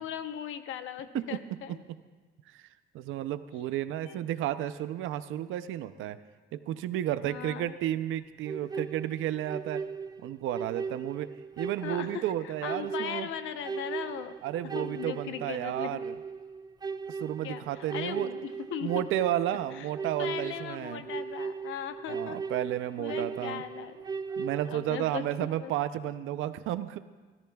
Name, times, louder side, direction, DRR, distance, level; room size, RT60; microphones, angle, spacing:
voice 1, 0.0-1.8 4.0-4.2 7.2-7.7 8.8-8.9 11.8-14.3 14.7-16.1 17.4-19.1 19.8-19.9 20.2-22.4 23.0-24.0 24.7-25.8, left 9 dB, 85° left, 9 dB, 0.9 m, -38 dB
voice 2, 2.9-6.2 6.5-9.8 10.2-11.3 11.6-13.3 14.4-16.2 17.1-18.3 18.8-21.0 22.1-23.6 24.4-27.0, right 12 dB, 90° right, 12 dB, 0.6 m, -32 dB
sound 1, 8.4-24.9, right 5 dB, 20° right, 0.4 m, -38 dB
29.5 x 14.0 x 2.3 m, 1.4 s
cardioid pair, 90°, 20 cm